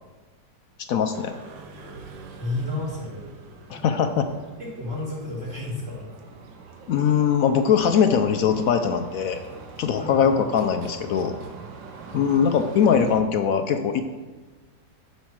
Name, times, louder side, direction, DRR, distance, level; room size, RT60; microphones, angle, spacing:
voice 1, 0.9-1.3 3.7-4.3 6.9-9.4 9.8-11.3 12.1-14.0, left 7 dB, 70° left, 7 dB, 0.8 m, -21 dB
sound 1, 1.1-13.2, right 5 dB, 90° right, 1.6 m, -43 dB
voice 2, 2.4-3.3 3.7-3.8 4.6-6.0 10.0-10.3 12.1-12.2, left 2 dB, 5° right, -11 dB, 3.3 m, -31 dB
11.0 x 5.7 x 4.6 m, 1.3 s
omnidirectional pair, 1.9 m